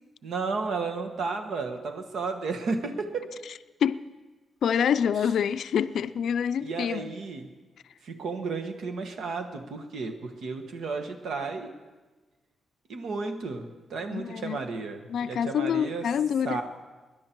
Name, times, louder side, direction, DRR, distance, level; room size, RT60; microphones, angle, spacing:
voice 1, 0.2-3.4 5.2-5.3 6.6-7.5 8.0-11.7 12.9-16.1 16.4-16.6, right 4 dB, 80° right, 6 dB, 1.4 m, -33 dB
voice 2, 4.6-7.1 14.1-14.6 15.1-16.6, left 8 dB, 75° left, 13 dB, 0.4 m, -26 dB
20.0 x 10.5 x 4.5 m, 1.2 s
wide cardioid pair, 130°, 0 cm